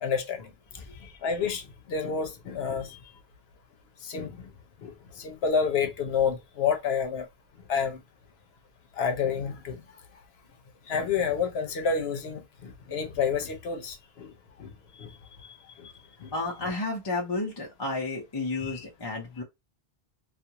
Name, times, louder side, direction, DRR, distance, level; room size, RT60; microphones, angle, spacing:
voice 1, 0.0-3.0 4.0-4.5 4.8-7.3 7.7-8.0 9.0-9.8 10.9-14.3 14.6-14.7 15.0-15.2 15.4-15.9 16.2-16.3 18.5-18.8, left 6 dB, 75° left, 0.9 m, -29 dB
voice 2, 16.3-19.4, left 2 dB, 30° left, 0.5 m, -31 dB
2.4 x 2.4 x 2.8 m
omnidirectional pair, 1.1 m